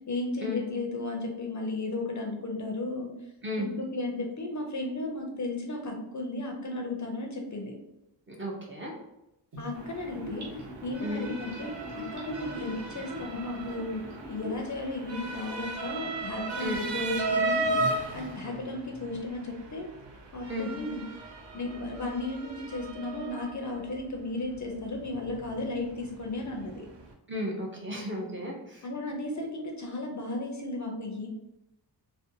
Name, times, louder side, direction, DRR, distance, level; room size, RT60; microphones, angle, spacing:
voice 1, 0.1-3.1 3.6-7.7 9.6-10.5 10.8-14.0 14.3-17.8 18.1-19.9 20.3-21.0 21.5-26.9 28.8-31.3, left 2 dB, 45° left, 1 dB, 0.4 m, -34 dB
voice 2, 8.3-8.9 11.0-11.3 16.6-16.8 20.5-20.7 27.3-28.8, left 1 dB, 30° right, -2 dB, 0.4 m, -34 dB
Gurgling / Bathtub (filling or washing), 9.5-14.7 15.0-15.1, left 1 dB, 60° right, 0.9 m, -42 dB
Motor vehicle (road) / Siren, 9.7-27.1, right 2 dB, 80° right, 0.6 m, -36 dB
2.5 x 2.2 x 2.6 m, 0.87 s
wide cardioid pair, 135°, 43 cm